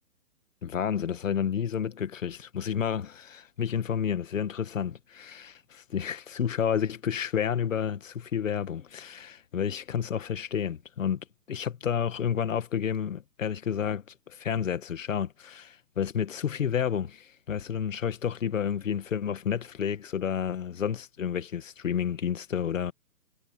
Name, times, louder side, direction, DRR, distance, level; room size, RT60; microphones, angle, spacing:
voice 1, 0.6-11.2 11.5-22.9, left 8 dB, 55° left, 1.9 m, -30 dB
hypercardioid pair, 180°, 47 cm